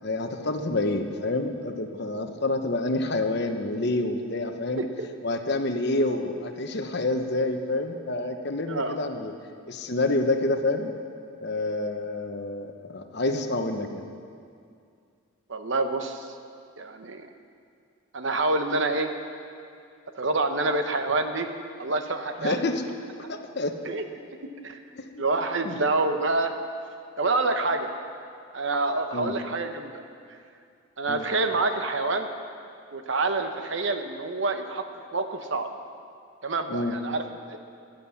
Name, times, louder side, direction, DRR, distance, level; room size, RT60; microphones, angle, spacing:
voice 1, 0.0-4.8 5.2-9.3 9.7-10.9 11.4-14.1 22.4-22.8 23.3-23.8 24.9-25.2 25.6-25.8 29.1-29.3 31.1-31.2 36.7-37.0, left 2 dB, 50° left, 6 dB, 1.0 m, -28 dB
voice 2, 8.7-9.0 15.5-16.3 16.8-17.3 18.1-19.1 20.1-21.5 21.8-22.6 23.8-24.1 24.6-24.8 25.2-26.5 27.2-27.9 28.5-30.0 31.0-32.3 32.9-34.8 35.1-35.7 36.4-37.6, right 3 dB, 60° right, 7 dB, 1.0 m, -27 dB
15.0 x 10.5 x 7.1 m, 2.4 s
head